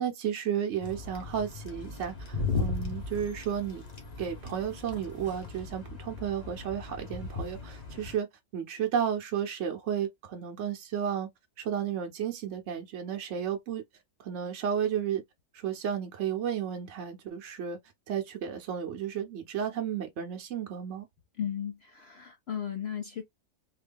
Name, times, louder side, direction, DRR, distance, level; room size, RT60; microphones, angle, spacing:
voice 1, 0.0-3.8 4.2-11.3 11.6-13.8 14.2-15.2 15.5-17.8 18.1-21.1, right 8 dB, 60° right, 0.8 m, -33 dB
sound 1, 0.8-8.1, left 4 dB, 30° left, 1.0 m, -37 dB
voice 2, 21.4-23.2, left 9 dB, 75° left, 0.6 m, -35 dB
3.7 x 2.2 x 3.4 m
omnidirectional pair, 1.8 m